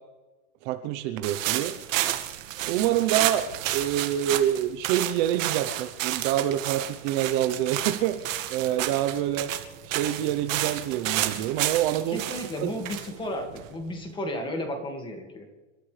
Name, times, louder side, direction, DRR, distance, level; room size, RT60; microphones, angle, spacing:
voice 1, 0.6-1.7 2.7-9.5 9.8-12.2 12.6-12.7, right 11 dB, 40° right, 8 dB, 0.9 m, -27 dB
sound 1, 1.2-14.0, right 13 dB, 80° right, 2.0 m, -31 dB
voice 2, 12.1-15.5, left 1 dB, 10° left, 4 dB, 2.1 m, -33 dB
29.5 x 13.0 x 3.4 m, 1.2 s
supercardioid pair, 165°, 38 cm